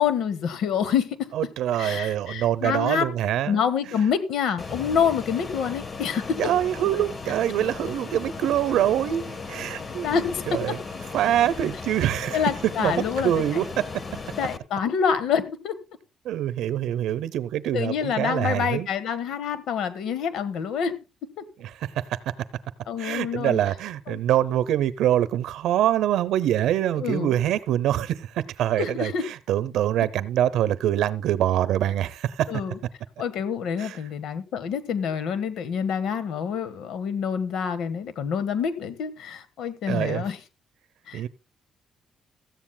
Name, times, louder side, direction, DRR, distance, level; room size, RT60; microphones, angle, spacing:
voice 1, 0.0-1.3 1.8-3.1 3.5-6.4 10.0-10.7 12.3-13.3 14.4-15.7 17.7-20.9 21.4-21.5 22.9-23.6 24.1-24.2 27.0-27.4 28.8-29.2 32.5-32.8 33.2-40.4 41.1-41.2, left 7 dB, 80° left, 1.4 m, -27 dB
voice 2, 1.3-3.7 6.4-10.2 10.5-10.8 11.1-14.0 16.2-18.9 21.6-22.2 23.0-32.5 33.8-34.0 39.9-40.2 41.1-41.3, right 11 dB, 85° right, 0.7 m, -25 dB
Fixed-wing aircraft airplane, 4.6-14.6, left 4 dB, 35° left, 1.2 m, -36 dB
16.5 x 14.0 x 2.3 m
cardioid pair, 90°, 0 cm